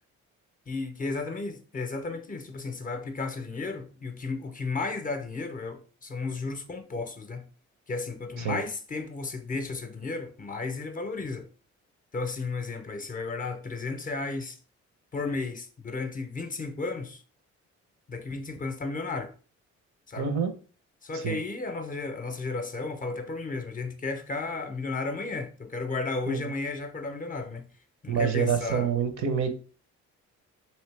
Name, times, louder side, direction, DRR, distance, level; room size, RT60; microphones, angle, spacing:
voice 1, 0.7-7.4 7.9-11.5 12.1-14.6 15.1-17.2 18.1-19.3 20.1-20.3 21.0-27.7 28.0-28.9, left 3 dB, 25° left, 0.5 m, -33 dB
voice 2, 20.2-20.5 21.1-21.4 26.3-26.5 28.1-29.5, right 7 dB, 70° right, 0.7 m, -27 dB
3.0 x 2.8 x 3.2 m
cardioid pair, 90°, 30 cm